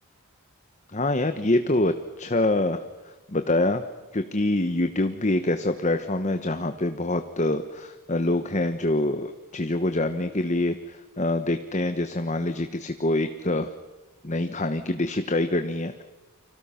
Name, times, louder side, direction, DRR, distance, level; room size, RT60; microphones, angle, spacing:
voice 1, 0.9-2.8 3.3-3.8 4.1-13.7 14.2-16.0, left 2 dB, 30° left, 8 dB, 1.0 m, -25 dB
30.0 x 25.5 x 5.7 m, 1.2 s
head